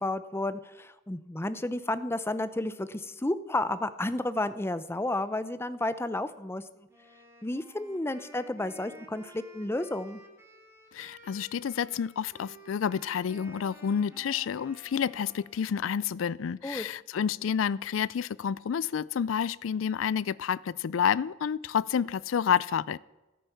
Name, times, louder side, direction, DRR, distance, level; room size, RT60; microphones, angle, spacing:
voice 1, 0.0-6.6 7.4-10.2 16.6-16.9, left 1 dB, 10° left, 14 dB, 0.6 m, -32 dB
Wind instrument woodwind instrument, 6.9-15.7, right 1 dB, 15° right, 2.4 m, -53 dB
voice 2, 10.9-23.0, left 7 dB, 80° left, 20 dB, 0.4 m, -29 dB
13.5 x 10.0 x 7.0 m, 1.1 s
head